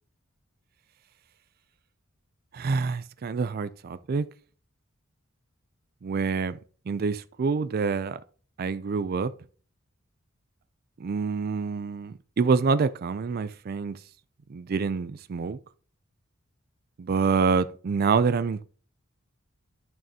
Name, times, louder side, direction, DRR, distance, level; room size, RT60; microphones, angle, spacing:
voice 1, 2.5-4.2 6.0-6.6 6.9-8.2 8.6-9.3 11.0-14.0 14.5-15.6 17.0-18.6, right 5 dB, 45° right, 0.4 m, -26 dB
11.0 x 6.2 x 2.8 m
head